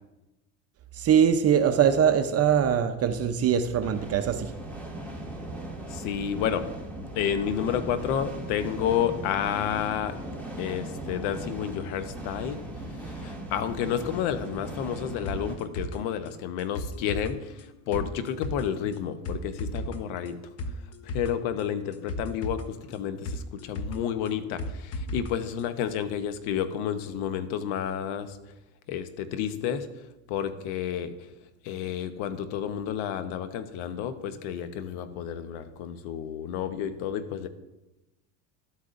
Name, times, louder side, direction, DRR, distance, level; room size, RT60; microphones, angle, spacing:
voice 1, 1.0-4.5, right 8 dB, 35° right, 8 dB, 0.7 m, -22 dB
sound 1, 3.8-15.6, right 1 dB, 5° left, 2.0 m, -38 dB
voice 2, 5.9-6.7 7.1-10.2 10.6-12.6 13.0-20.4 21.0-28.4 28.9-29.9 30.3-31.1 31.6-37.5, left 9 dB, 70° left, 10 dB, 1.0 m, -30 dB
sound 2, 15.3-25.3 25.6-25.7, left 1 dB, 40° left, 0.9 m, -36 dB
12.5 x 8.3 x 2.6 m, 0.98 s
supercardioid pair, 105°, 41 cm